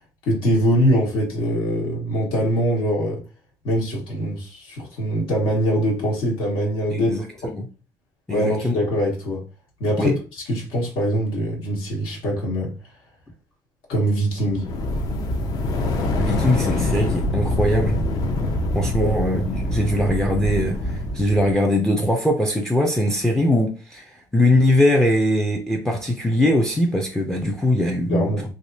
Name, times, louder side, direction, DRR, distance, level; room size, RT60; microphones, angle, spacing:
voice 1, 0.2-3.2 3.6-7.1 7.4-7.5 8.3-9.4 9.8-12.7 13.9-14.6 19.0-19.1 28.1-28.4, equal, 75° left, 1.4 m, -23 dB
voice 2, 6.9-7.7 8.3-8.8 10.0-10.2 16.2-18.0 18.7-28.3, left 1 dB, 5° left, 0.4 m, -21 dB
sound 1, 14.5-21.5, left 1 dB, 45° left, 0.6 m, -24 dB
3.3 x 2.8 x 2.7 m
cardioid pair, 155°, 9 cm